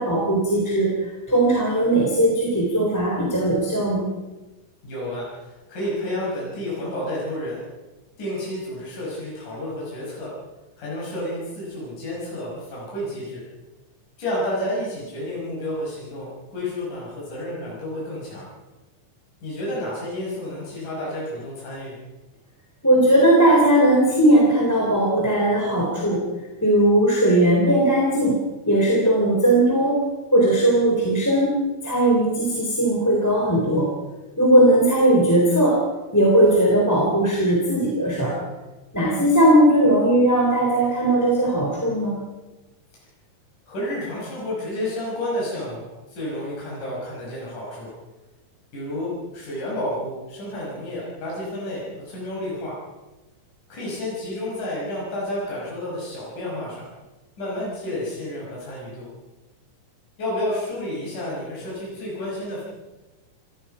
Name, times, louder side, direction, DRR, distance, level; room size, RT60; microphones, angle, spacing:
voice 1, 0.0-4.1 22.8-26.2 26.6-28.4 28.6-30.0 30.3-31.5 31.8-33.9 34.4-35.8 36.1-38.4 38.9-42.2, right 1 dB, 5° left, -2 dB, 3.4 m, -18 dB
voice 2, 4.8-7.6 8.2-10.3 10.8-13.4 14.2-18.5 19.4-22.0 43.7-47.9 48.7-52.7 53.7-56.9 57.4-59.1 60.2-62.6, left 1 dB, 65° left, -5 dB, 7.5 m, -30 dB
28.0 x 16.5 x 5.7 m, 1.1 s
omnidirectional pair, 3.8 m